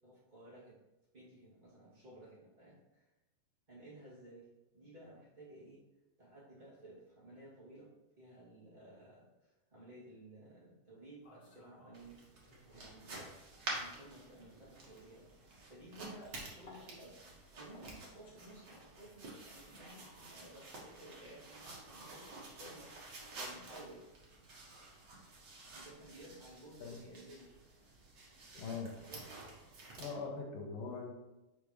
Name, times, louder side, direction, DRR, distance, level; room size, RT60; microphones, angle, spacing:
voice 1, 0.0-0.8 1.1-3.1 3.7-4.5 4.7-5.8 6.2-12.2 12.7-13.4 13.8-15.3 15.7-22.9 23.4-24.1 25.6-27.5 28.5-29.4, right 1 dB, 15° right, -9 dB, 1.7 m, -55 dB
sound 1, 10.9-13.0 13.3-21.1, left 2 dB, 45° left, 1.3 m, -64 dB
sound 2, 11.9-30.1, right 2 dB, 80° right, 0.9 m, -50 dB
voice 2, 28.6-28.9 30.0-31.1, left 4 dB, 75° left, 1 dB, 2.6 m, -41 dB
7.4 x 5.2 x 3.2 m, 1.0 s
omnidirectional pair, 4.2 m